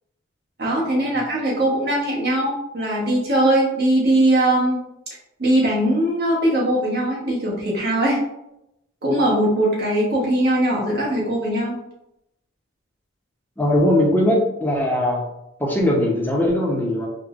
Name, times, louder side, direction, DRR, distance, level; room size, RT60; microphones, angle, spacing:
voice 1, 0.6-4.8 5.4-8.2 9.0-11.8, right 1 dB, 50° right, -4 dB, 0.9 m, -20 dB
voice 2, 13.6-15.2 15.6-17.1, left 1 dB, 10° left, -1 dB, 0.5 m, -20 dB
4.5 x 2.0 x 2.4 m, 0.86 s
head